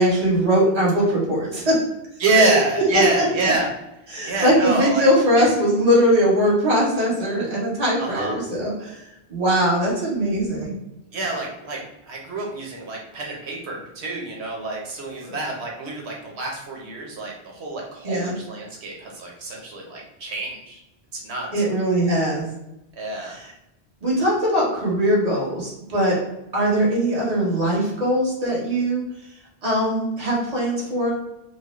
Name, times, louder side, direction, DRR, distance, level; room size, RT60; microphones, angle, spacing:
voice 1, 0.0-1.8 2.3-2.5 2.9-3.5 4.1-9.0 9.3-10.7 15.3-15.4 18.0-18.3 21.5-22.4 23.2-23.5 24.0-26.2 26.5-29.0 29.6-31.1, equal, 40° right, -5 dB, 1.3 m, -21 dB
voice 2, 2.2-3.7 4.2-5.1 5.4-5.5 8.0-8.4 11.1-20.8 21.1-21.6 23.0-23.4, right 3 dB, 85° right, -1 dB, 1.1 m, -26 dB
4.3 x 2.0 x 3.0 m, 0.91 s
omnidirectional pair, 1.1 m